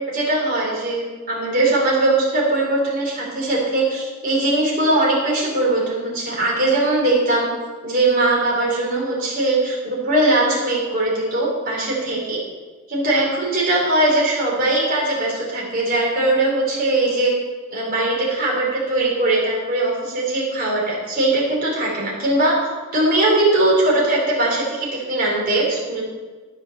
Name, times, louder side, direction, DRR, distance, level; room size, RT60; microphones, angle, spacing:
voice 1, 0.0-7.5 7.8-12.4 12.9-17.3 17.7-26.0, right 2 dB, 45° right, -4 dB, 4.1 m, -20 dB
12.0 x 6.7 x 6.7 m, 1.4 s
head